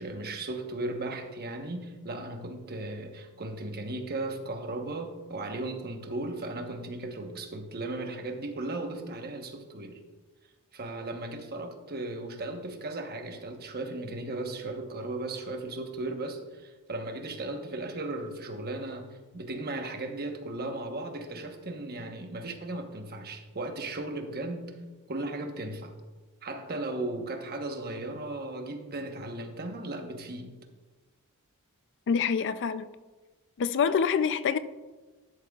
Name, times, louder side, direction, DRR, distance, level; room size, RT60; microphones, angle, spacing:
voice 1, 0.0-10.0 10.7-24.7 25.1-25.9 26.4-30.6, right 2 dB, 45° right, 1.1 m, -36 dB
voice 2, 32.1-32.9 33.6-34.6, left 6 dB, 55° left, 0.4 m, -26 dB
12.5 x 11.0 x 2.4 m
head